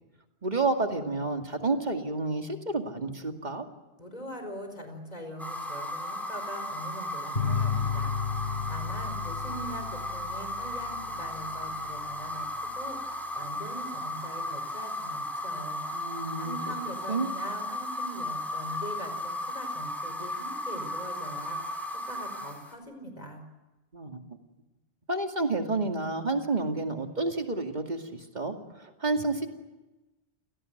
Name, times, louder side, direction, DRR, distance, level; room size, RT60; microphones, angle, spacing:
voice 1, 0.4-3.6 15.9-16.7 17.1-17.3 23.9-24.4 25.1-29.5, right 3 dB, 40° right, 4 dB, 2.5 m, -30 dB
voice 2, 4.0-8.1 8.7-16.0 16.4-21.8 22.1-23.4, right 1 dB, 40° left, 6 dB, 4.8 m, -42 dB
sound 1, 5.4-22.7, left 1 dB, ahead, 4.3 m, -35 dB
sound 2, 7.3-12.5, left 6 dB, 65° left, 4.3 m, -33 dB
29.0 x 17.5 x 9.2 m, 1.1 s
omnidirectional pair, 1.1 m